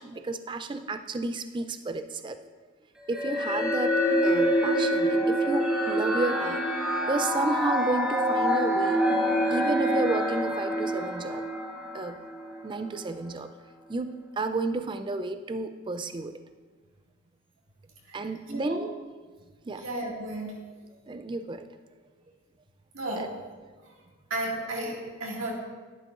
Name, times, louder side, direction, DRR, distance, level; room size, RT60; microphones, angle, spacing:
voice 1, 0.0-2.4 3.1-9.0 9.5-11.4 11.9-12.2 12.6-13.5 13.9-16.4 18.1-18.9 19.7-19.8 21.1-21.7 23.2-23.3, right 3 dB, 20° right, 9 dB, 0.3 m, -32 dB
sound 1, 3.1-12.6, equal, 5° right, 0.8 m, -26 dB
voice 2, 18.5-18.8 19.8-20.7 22.9-23.4 24.3-25.5, right 1 dB, 60° right, -2 dB, 2.0 m, -33 dB
12.0 x 11.0 x 2.5 m, 1.4 s
head